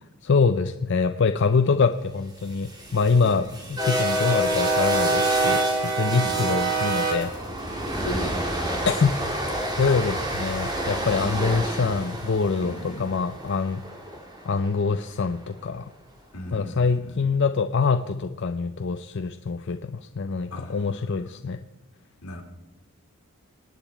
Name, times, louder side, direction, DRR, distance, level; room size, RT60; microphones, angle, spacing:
voice 1, 0.2-7.3 8.9-9.1 9.8-13.8 14.5-15.8 16.5-21.6, left 4 dB, 55° left, 8 dB, 0.5 m, -24 dB
sound 1, 2.5-14.7, right 2 dB, 20° right, 2.2 m, -27 dB
voice 2, 6.1-6.5 8.0-8.6 9.8-10.0 12.6-13.1 16.3-17.2 20.5-21.4 22.2-22.4, left 1 dB, 80° left, 0 dB, 3.1 m, -37 dB
27.0 x 9.0 x 4.5 m, 1.1 s
head